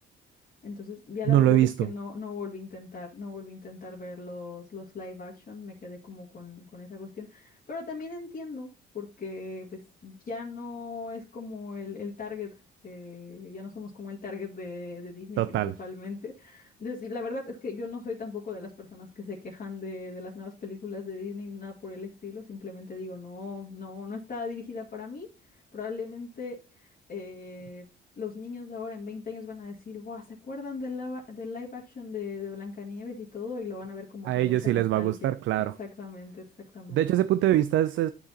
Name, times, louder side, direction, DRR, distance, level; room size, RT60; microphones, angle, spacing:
voice 1, 0.6-12.6 12.8-27.9 28.2-35.3 35.8-36.4 36.7-37.3, left 4 dB, 45° left, 2.0 m, -38 dB
voice 2, 1.3-1.9 15.4-15.7 34.2-35.8 36.9-38.1, right 13 dB, 75° right, 0.4 m, -23 dB
11.5 x 4.7 x 2.8 m
cardioid pair, 90°, 20 cm